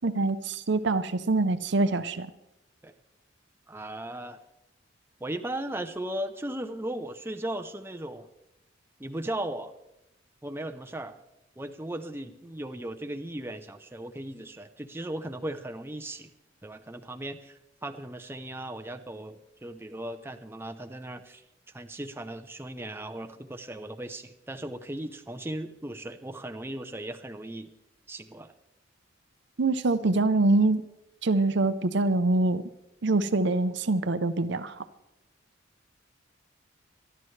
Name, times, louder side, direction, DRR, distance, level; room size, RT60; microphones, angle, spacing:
voice 1, 0.0-2.3 29.6-30.8 31.2-32.6 33.0-34.8, right 2 dB, 60° right, 11 dB, 0.7 m, -24 dB
voice 2, 3.7-4.4 5.2-8.3 9.0-9.7 10.4-11.2 11.6-16.3 16.6-21.4 21.7-27.7 28.1-28.5, right 1 dB, 10° right, 8 dB, 0.7 m, -37 dB
26.0 x 11.0 x 3.3 m, 0.87 s
head